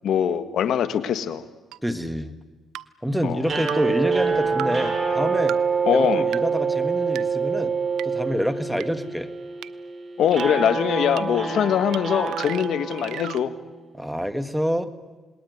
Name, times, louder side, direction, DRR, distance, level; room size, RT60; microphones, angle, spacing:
voice 1, 0.0-1.4 3.2-3.4 5.8-6.2 10.2-13.5, left 9 dB, 70° left, 12 dB, 1.6 m, -22 dB
sound 1, 1.7-1.8 2.7-2.9 3.7-3.8 4.6-4.7 5.5-5.6 6.3-6.4 7.2-7.3 8.0-8.1 8.8-8.9 9.6-9.7 10.4-10.5 11.2-11.3 11.9-12.0 12.3-13.4, right 14 dB, 85° right, 0.7 m, -34 dB
voice 2, 1.8-2.3 3.0-5.5 5.9-7.7 8.0-9.3 13.9-14.9, equal, 5° right, 9 dB, 1.8 m, -27 dB
sound 2, 3.4-13.7, right 5 dB, 35° right, 6.1 m, -26 dB
28.0 x 20.0 x 9.5 m, 1.3 s
cardioid pair, 90°, 0 cm